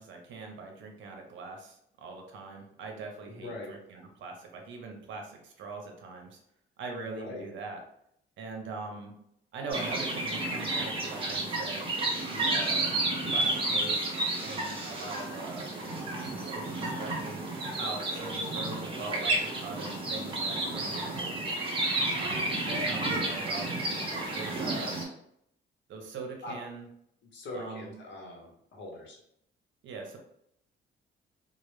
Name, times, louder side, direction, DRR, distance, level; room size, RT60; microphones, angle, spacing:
voice 1, 0.0-6.4 6.8-7.8 8.4-9.1 9.5-11.9 12.3-12.9 13.3-14.1 14.4-15.7 16.2-17.4 17.8-21.4 22.1-23.7 24.3-24.9 25.9-26.9 27.5-27.9 29.8-30.2, right 4 dB, 70° right, 2 dB, 0.6 m, -42 dB
voice 2, 3.3-3.7 7.0-7.4 26.4-26.6 27.3-29.2, left 2 dB, 65° left, 0 dB, 0.8 m, -42 dB
sound 1, 9.7-25.0, right 2 dB, 25° right, 0.7 m, -31 dB
2.0 x 2.0 x 3.0 m, 0.74 s
cardioid pair, 90°, 20 cm